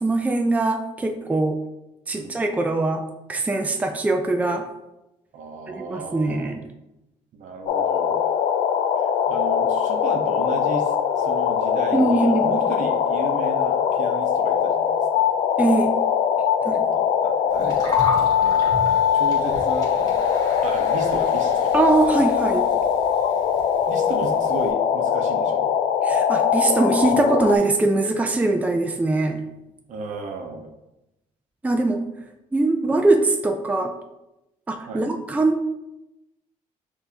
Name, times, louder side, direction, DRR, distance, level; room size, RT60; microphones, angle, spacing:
voice 1, 0.0-1.6 2.1-3.0 3.3-4.7 5.7-6.6 11.9-12.6 15.6-15.9 16.6-16.8 21.7-22.7 26.0-29.4 31.6-32.0 32.5-33.9 34.7-35.7, right 2 dB, 10° right, 4 dB, 0.4 m, -22 dB
voice 2, 5.3-6.5 7.3-8.2 9.0-15.3 16.6-18.7 19.1-19.9 20.6-21.8 23.9-25.7 29.9-30.7 34.9-35.0, right 4 dB, 65° right, 3 dB, 0.8 m, -35 dB
sound 1, 7.7-27.6, left 8 dB, 70° left, 0.4 m, -21 dB
Gurgling, 17.5-24.7, left 1 dB, 25° left, 1.3 m, -36 dB
6.0 x 2.7 x 2.8 m, 0.93 s
cardioid pair, 90°, 14 cm